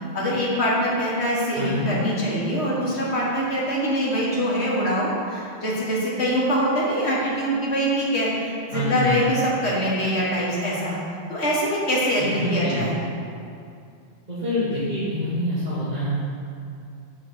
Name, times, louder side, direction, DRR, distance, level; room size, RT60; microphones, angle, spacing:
voice 1, 0.1-11.0 11.3-13.0, equal, 90° left, -5 dB, 1.9 m, -24 dB
voice 2, 1.6-1.9 8.7-9.1 12.2-12.8 14.3-16.3, equal, 40° right, -12 dB, 1.8 m, -26 dB
7.5 x 4.0 x 6.5 m, 2.4 s
omnidirectional pair, 1.1 m